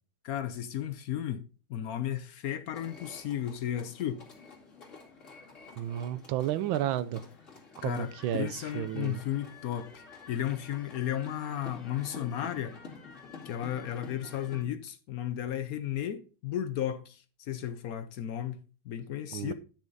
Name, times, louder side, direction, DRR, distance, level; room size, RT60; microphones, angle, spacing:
voice 1, 0.2-4.2 7.8-12.8 13.4-19.5, left 11 dB, 70° left, 0.8 m, -34 dB
sound 1, 2.7-14.6, left 4 dB, 35° left, 2.7 m, -49 dB
voice 2, 5.8-7.2 7.8-9.2 19.3-19.5, right 12 dB, 80° right, 1.4 m, -32 dB
10.0 x 6.4 x 3.9 m
omnidirectional pair, 2.2 m